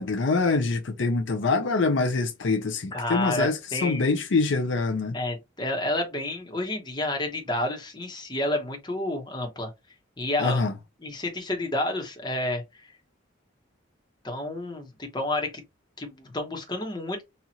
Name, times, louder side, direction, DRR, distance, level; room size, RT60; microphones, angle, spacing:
voice 1, 0.0-5.2 10.4-10.7, left 3 dB, 70° left, 0.6 m, -25 dB
voice 2, 2.9-4.1 5.1-9.7 10.2-10.6 11.0-12.6 14.2-15.6 16.0-17.2, left 1 dB, 20° left, 1.0 m, -30 dB
4.2 x 2.5 x 2.9 m
head